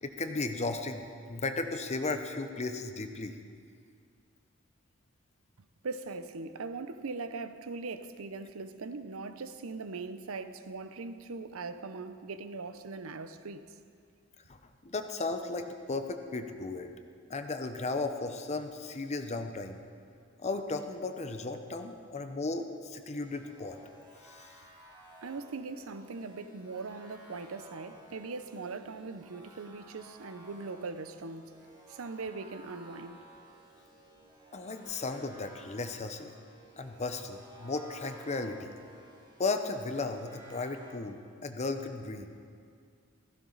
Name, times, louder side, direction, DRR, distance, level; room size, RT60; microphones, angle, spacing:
voice 1, 0.0-1.0 1.3-3.3 14.5-16.9 17.3-19.8 20.4-23.8 24.2-24.5 34.5-36.3 36.8-38.7 39.4-42.3, left 3 dB, 35° left, 0.8 m, -35 dB
voice 2, 5.8-13.8 25.2-31.6 31.9-33.3, right 4 dB, 85° right, 0.7 m, -40 dB
sound 1, 23.0-41.0, right 1 dB, 20° right, 2.2 m, -55 dB
16.0 x 15.0 x 4.0 m
head